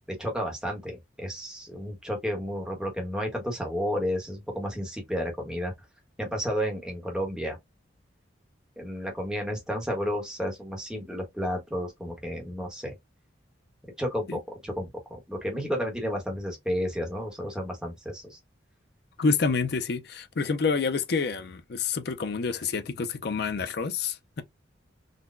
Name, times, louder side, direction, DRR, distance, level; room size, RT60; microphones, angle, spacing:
voice 1, 0.1-5.7 6.2-7.6 8.8-12.9 14.0-14.9 15.3-18.4, equal, 5° right, 1.0 m, -32 dB
voice 2, 19.2-24.4, left 4 dB, 55° left, 0.5 m, -28 dB
3.9 x 2.2 x 2.4 m
head